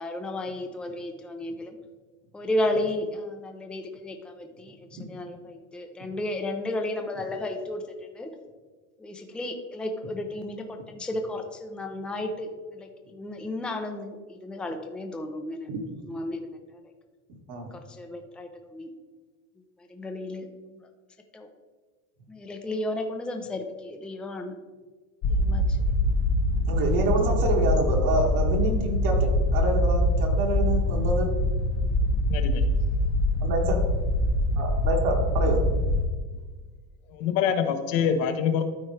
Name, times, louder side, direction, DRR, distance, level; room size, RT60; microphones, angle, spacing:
voice 1, 0.0-1.8 2.3-4.8 5.1-8.3 9.0-12.5 12.7-15.7 16.1-16.6 18.0-18.9 19.9-20.5 21.3-21.5 22.3-24.5 25.3-25.6, left 1 dB, ahead, 4 dB, 0.5 m, -33 dB
sound 1, 25.2-36.1, left 1 dB, 40° left, 0.9 m, -24 dB
voice 2, 26.7-31.3 33.4-33.8 34.6-35.6, right 2 dB, 55° right, 1 dB, 1.9 m, -27 dB
voice 3, 32.3-32.7 37.1-38.6, left 7 dB, 70° left, 7 dB, 1.1 m, -25 dB
13.0 x 4.4 x 3.2 m, 1.4 s
supercardioid pair, 120°, 44 cm